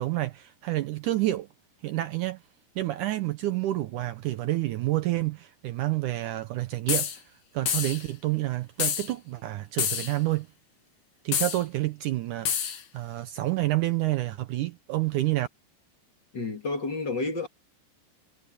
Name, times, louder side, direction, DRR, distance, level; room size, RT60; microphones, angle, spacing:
voice 1, 0.0-1.5 1.8-2.4 2.8-7.2 7.5-10.5 11.2-15.5, right 16 dB, 75° right, 2.0 m, -29 dB
sound 1, 6.9-7.2 7.7-8.0 8.8-9.1 9.8-10.2 11.3-11.6 12.5-12.8, left 8 dB, 60° left, 3.2 m, -28 dB
voice 2, 16.3-17.5, left 3 dB, 35° left, 2.6 m, -30 dB
omnidirectional pair, 4.1 m